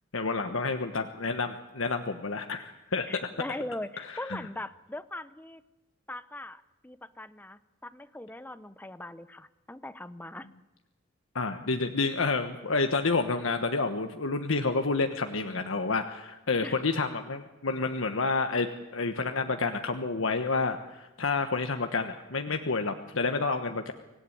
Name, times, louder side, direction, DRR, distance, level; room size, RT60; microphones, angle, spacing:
voice 1, 0.1-3.1 4.0-4.4 11.3-18.7 18.9-23.9, left 3 dB, 90° left, 7 dB, 1.2 m, -29 dB
voice 2, 3.1-5.6 6.1-10.5 16.6-16.8, left 1 dB, 10° left, 14 dB, 0.8 m, -40 dB
25.0 x 17.0 x 10.0 m, 1.1 s
head